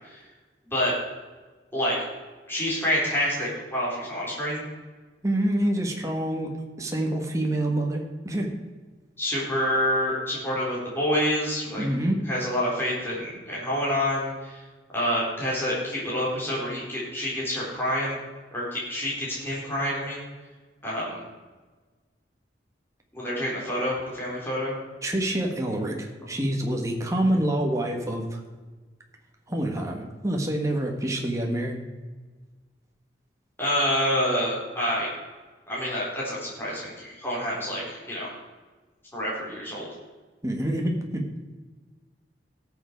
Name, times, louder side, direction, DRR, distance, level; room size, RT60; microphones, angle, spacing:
voice 1, 2.5-4.6 9.2-11.8 12.3-14.6 14.9-18.2 18.5-20.2 20.8-21.2 23.1-24.7 33.6-35.1 35.7-38.3 39.1-39.9, equal, 15° left, -6 dB, 4.2 m, -27 dB
voice 2, 5.2-6.5 6.8-8.6 11.8-12.2 25.0-28.4 29.5-31.8 40.4-41.2, right 1 dB, 20° right, 1 dB, 1.6 m, -27 dB
17.5 x 7.1 x 4.6 m, 1.3 s
head